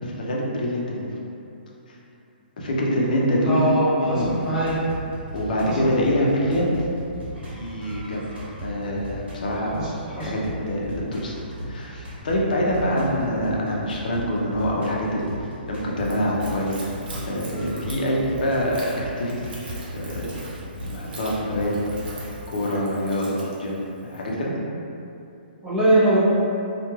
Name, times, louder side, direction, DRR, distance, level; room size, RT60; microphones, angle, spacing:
voice 1, 0.0-1.1 1.9-2.0 2.6-4.3 5.3-6.7 7.5-8.2 8.6-9.8 10.2-11.3 11.7-17.0 17.2-19.5 19.9-20.3 20.8-21.7 22.0-22.1 22.5-24.5, equal, 50° left, -3 dB, 0.5 m, -25 dB
voice 2, 3.5-4.8 5.6-5.8 9.7-9.9 10.2-10.3 25.6-26.2, right 1 dB, 10° right, -10 dB, 0.3 m, -21 dB
sound 1, 3.9-22.4, equal, 75° right, 0.9 m, -37 dB
Splash splatter / Trickle dribble, 16.0-24.3, right 2 dB, 55° right, 0.6 m, -43 dB
2.2 x 2.2 x 3.0 m, 2.7 s
hypercardioid pair, 170°, 6 cm